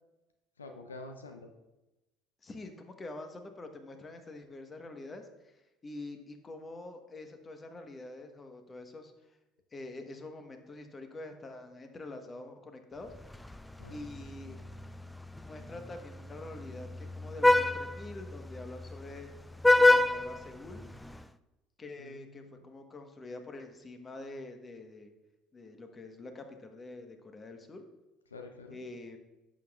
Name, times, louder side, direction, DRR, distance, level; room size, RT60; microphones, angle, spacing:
voice 1, 0.6-1.5 13.8-14.0 22.0-22.7 28.3-28.8, left 3 dB, 90° left, 5 dB, 0.6 m, -47 dB
voice 2, 2.4-5.3 5.8-9.1 9.7-13.1 13.9-14.6 15.4-19.3 19.8-20.8 21.8-25.1 25.5-27.8 28.7-29.2, left 2 dB, 30° left, 6 dB, 1.3 m, -45 dB
Vehicle horn car horn honking, 13.1-21.2, left 2 dB, 5° left, 0.4 m, -29 dB
10.5 x 7.4 x 2.4 m, 1.0 s
hypercardioid pair, 65°, 0 cm